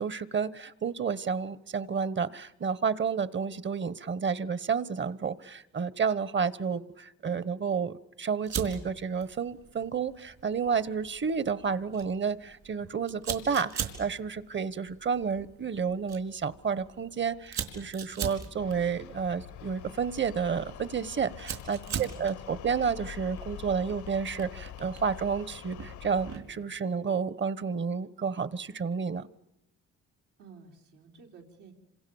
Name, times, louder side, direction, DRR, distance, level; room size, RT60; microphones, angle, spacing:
voice 1, 0.0-29.3, right 6 dB, 40° right, 18 dB, 1.1 m, -31 dB
Fire, 8.5-26.6, right 8 dB, 65° right, 4.8 m, -42 dB
sound 1, 18.6-26.4, left 11 dB, 75° left, 1.0 m, -45 dB
voice 2, 21.8-22.7 30.4-31.7, right 4 dB, 85° right, 0 dB, 3.9 m, -53 dB
28.0 x 26.0 x 7.1 m, 0.85 s
cardioid pair, 90°, 30 cm